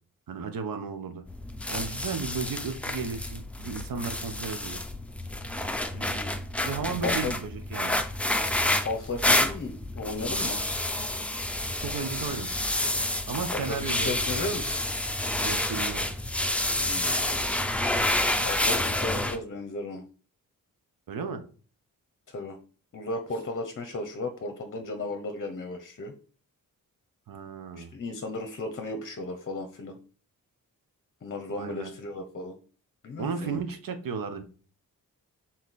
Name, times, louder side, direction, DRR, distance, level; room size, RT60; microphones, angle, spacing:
voice 1, 0.3-1.2 1.7-4.8 6.6-8.0 11.8-12.6 13.3-14.4 15.4-16.1 21.1-21.4 27.3-27.9 31.5-31.9 33.2-34.4, right 5 dB, 80° right, 8 dB, 1.1 m, -34 dB
sound 1, 1.3-19.4, left 1 dB, 5° left, 0.5 m, -29 dB
voice 2, 5.9-6.4 7.0-7.3 8.7-10.6 13.5-14.8 16.8-17.1 18.4-20.1 22.3-22.6 22.9-26.1 27.7-30.0 31.2-32.6 33.0-33.6, left 2 dB, 40° left, 6 dB, 0.8 m, -35 dB
6.4 x 4.0 x 4.1 m, 0.39 s
wide cardioid pair, 175°, 34 cm